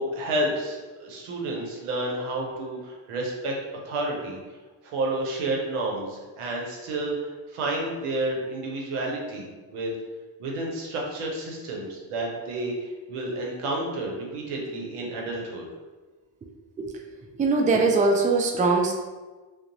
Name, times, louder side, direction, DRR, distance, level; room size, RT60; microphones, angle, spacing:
voice 1, 0.0-3.6 3.9-4.4 4.8-9.9 10.4-15.7, right 1 dB, 90° right, -1 dB, 0.7 m, -30 dB
voice 2, 17.4-18.9, right 3 dB, 20° right, 2 dB, 0.3 m, -21 dB
2.5 x 2.0 x 2.8 m, 1.3 s
supercardioid pair, 45°, 49 cm